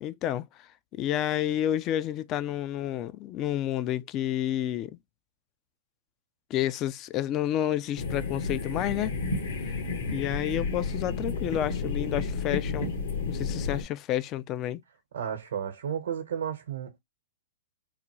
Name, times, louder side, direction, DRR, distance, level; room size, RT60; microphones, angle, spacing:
voice 1, 0.0-0.5 1.0-5.0 6.5-9.2 10.1-12.9 13.3-14.8, left 12 dB, 35° left, 0.4 m, -30 dB
sound 1, 8.0-13.8, left 4 dB, 70° left, 1.4 m, -31 dB
voice 2, 15.1-17.0, right 8 dB, 75° right, 0.9 m, -33 dB
3.8 x 2.2 x 2.9 m
hypercardioid pair, 125°, 0 cm